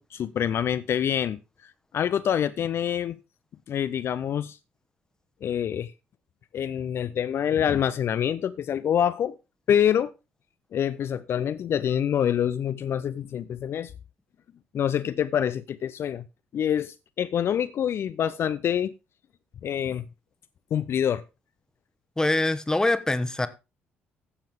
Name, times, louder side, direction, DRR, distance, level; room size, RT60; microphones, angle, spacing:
voice 1, 0.0-3.2 3.7-4.6 5.4-5.9 6.5-9.4 9.7-10.1 10.7-13.9 14.7-16.2 16.5-18.9 19.6-20.0 20.7-21.2, left 9 dB, 45° left, 0.5 m, -26 dB
voice 2, 22.2-23.5, left 2 dB, 10° left, 1.2 m, -24 dB
15.0 x 7.2 x 3.6 m
figure-of-eight pair, 50°, 6 cm